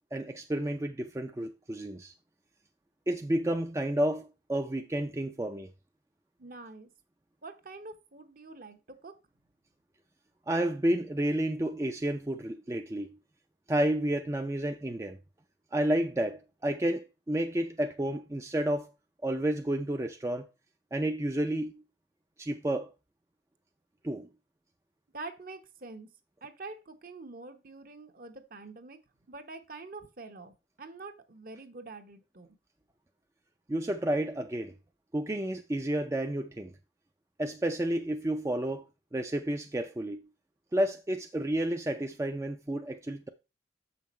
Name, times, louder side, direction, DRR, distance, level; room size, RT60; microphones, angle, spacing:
voice 1, 0.1-2.1 3.1-5.7 10.5-13.1 13.7-15.2 15.7-18.9 19.2-20.5 20.9-21.8 22.4-22.9 24.0-24.3 33.7-34.7 35.1-36.7 37.4-38.9 39.1-40.2 40.7-43.3, right 1 dB, 15° right, 0.4 m, -31 dB
voice 2, 6.4-6.9 7.4-9.2 25.1-26.1 26.4-29.0 29.3-32.5, right 3 dB, 50° right, 1.0 m, -45 dB
7.4 x 5.7 x 4.3 m
head